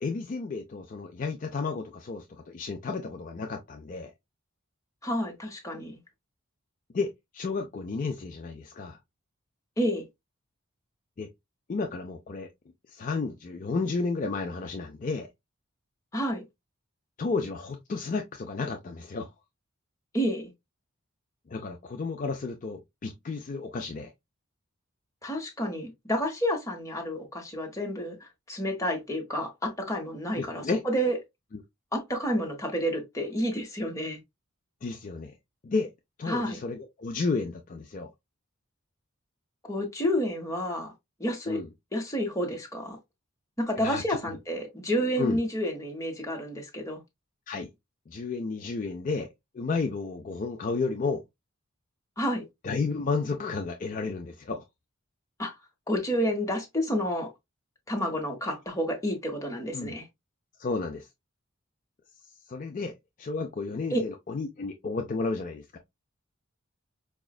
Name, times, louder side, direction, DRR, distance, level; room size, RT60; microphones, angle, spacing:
voice 1, 0.0-4.1 6.9-9.0 11.2-11.3 11.7-12.5 12.9-15.3 17.2-19.3 21.5-24.1 30.4-30.8 31.5-31.6 34.8-35.3 35.6-35.9 36.2-38.1 41.5-41.7 43.8-44.4 45.2-45.4 47.5-47.7 48.1-49.3 49.5-51.2 52.6-54.6 59.7-59.9 60.6-61.1 62.5-62.9 63.2-65.8, left 4 dB, 40° left, 0.4 m, -32 dB
voice 2, 5.0-6.0 9.8-10.0 16.1-16.4 20.1-20.5 25.2-28.2 28.5-31.2 31.9-34.2 36.3-36.6 39.6-40.9 41.2-41.6 41.9-43.0 43.6-47.0 52.2-52.5 55.4-55.5 55.9-57.3 57.9-60.1 63.9-64.0, equal, 15° left, 1.0 m, -30 dB
4.9 x 2.4 x 2.3 m
head